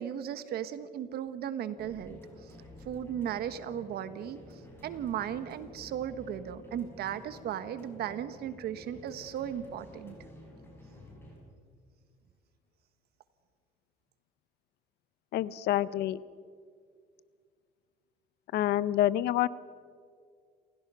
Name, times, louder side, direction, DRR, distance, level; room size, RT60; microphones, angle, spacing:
voice 1, 0.0-2.5 2.8-4.4 4.8-10.2, right 9 dB, 70° right, 12 dB, 1.3 m, -36 dB
sound 1, 1.8-11.4, left 1 dB, 15° left, 7.1 m, -51 dB
voice 2, 15.3-16.2 18.5-19.5, left 13 dB, 75° left, 18 dB, 0.7 m, -27 dB
29.0 x 16.0 x 5.6 m, 2.1 s
cardioid pair, 110°, 17 cm